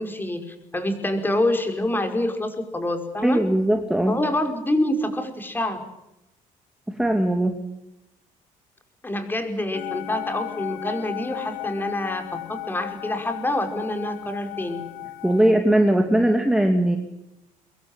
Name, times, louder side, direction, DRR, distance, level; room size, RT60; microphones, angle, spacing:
voice 1, 0.0-3.4 4.1-5.8 9.0-12.2 12.5-14.8, left 1 dB, 15° left, 6 dB, 5.3 m, -26 dB
voice 2, 3.2-4.2 6.9-7.6 15.2-17.0, right 1 dB, 5° right, 4 dB, 2.6 m, -20 dB
sound 1, 9.7-15.5, left 18 dB, 85° left, 1.4 m, -35 dB
25.0 x 22.0 x 8.9 m, 0.88 s
cardioid pair, 125°, 14 cm